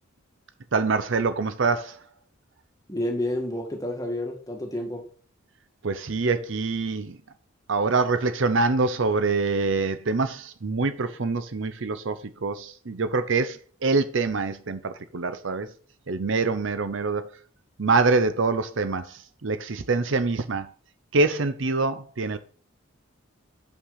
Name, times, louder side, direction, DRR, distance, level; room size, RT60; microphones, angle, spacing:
voice 1, 0.7-2.0 5.8-7.2 7.7-15.7 16.1-17.3 17.8-20.7 21.1-22.4, right 3 dB, 60° right, 0.7 m, -25 dB
voice 2, 2.9-5.0, left 1 dB, 15° left, 1.7 m, -29 dB
6.5 x 5.8 x 5.7 m
head